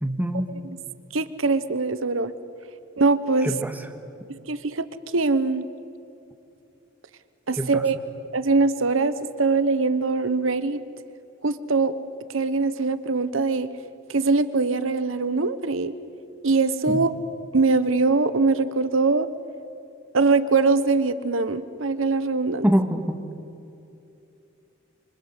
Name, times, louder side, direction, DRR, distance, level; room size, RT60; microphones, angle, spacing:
voice 1, 0.0-0.5 3.4-3.8 7.6-7.8 16.9-17.0 22.6-23.2, equal, 10° right, 5 dB, 1.7 m, -24 dB
voice 2, 1.1-2.3 3.0-3.5 4.5-4.9 5.1-5.7 7.5-8.0 8.3-9.1 9.4-10.8 11.4-11.9 12.3-13.7 14.1-15.9 16.4-17.1 17.5-19.3 20.1-22.6, right 3 dB, 80° right, 13 dB, 1.0 m, -22 dB
26.5 x 24.5 x 8.2 m, 2.7 s
head